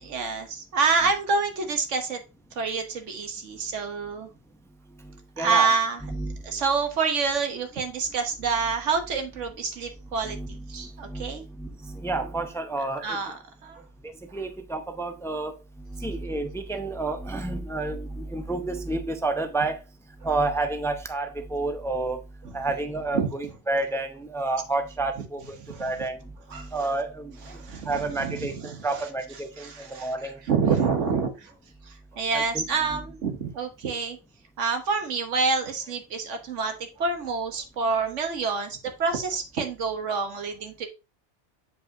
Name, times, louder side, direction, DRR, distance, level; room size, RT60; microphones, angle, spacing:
voice 1, 0.0-2.2 2.6-4.3 5.4-6.0 6.4-10.4 10.7-11.4 13.0-13.8 23.1-23.3 25.7-25.9 26.5-26.7 27.5-28.3 29.6-31.5 32.1-34.2 34.6-40.9, right 5 dB, 90° right, 1.5 m, -27 dB
voice 2, 5.0-5.7 6.0-6.6 10.2-13.2 14.0-19.8 20.2-30.4 32.3-33.0, right 2 dB, 5° left, 0.5 m, -30 dB
8.1 x 4.9 x 2.7 m
omnidirectional pair, 1.2 m